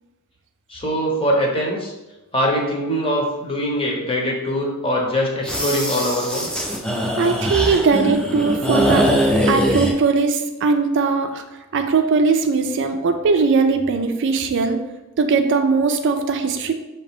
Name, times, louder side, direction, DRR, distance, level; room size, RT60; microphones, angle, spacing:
voice 1, 0.7-1.9 2.3-6.5, equal, 25° left, -1 dB, 0.9 m, -22 dB
sound 1, 5.4-9.9, equal, 5° left, 0.6 m, -21 dB
voice 2, 7.2-9.1 9.5-11.4 11.7-14.8 15.2-16.7, right 4 dB, 55° right, 6 dB, 0.4 m, -19 dB
5.0 x 2.8 x 3.6 m, 1.1 s
head